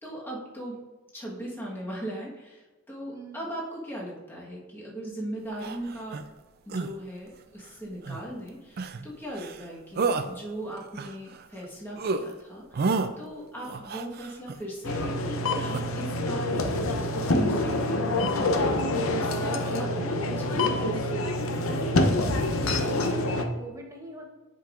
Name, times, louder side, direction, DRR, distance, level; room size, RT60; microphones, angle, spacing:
voice 1, 0.0-0.8 1.1-6.2 6.6-21.3, right 1 dB, 10° left, -5 dB, 1.3 m, -39 dB
voice 2, 3.1-3.4 23.0-24.3, right 1 dB, 15° right, 0 dB, 1.0 m, -43 dB
sound 1, 5.6-6.2 6.7-6.9 8.0-8.3 8.8-9.1 9.3-9.6 10.0-10.3 10.8-11.6 12.0-12.2 12.7-13.1 13.6-14.6 15.7-15.8, right 4 dB, 50° right, 0.4 m, -30 dB
sound 2, 14.8-23.5, left 1 dB, 75° left, 0.7 m, -26 dB
10.0 x 5.3 x 2.5 m, 1.2 s
head